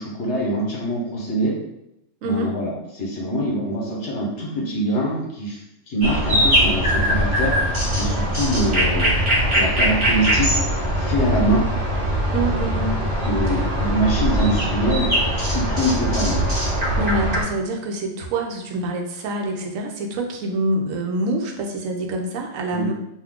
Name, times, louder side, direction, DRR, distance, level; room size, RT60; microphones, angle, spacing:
voice 1, 0.0-1.5 2.2-9.1 9.5-10.5 11.0-11.6 13.2-15.1 15.3-16.4 22.7-22.8, right 1 dB, 65° left, -3 dB, 1.1 m, -24 dB
voice 2, 2.2-2.6 12.3-13.0 13.5-13.6 17.0-22.9, right 2 dB, 85° right, 2 dB, 1.0 m, -26 dB
sound 1, 6.0-17.4, equal, 25° right, 0.8 m, -21 dB
2.6 x 2.3 x 3.6 m, 0.84 s
omnidirectional pair, 1.3 m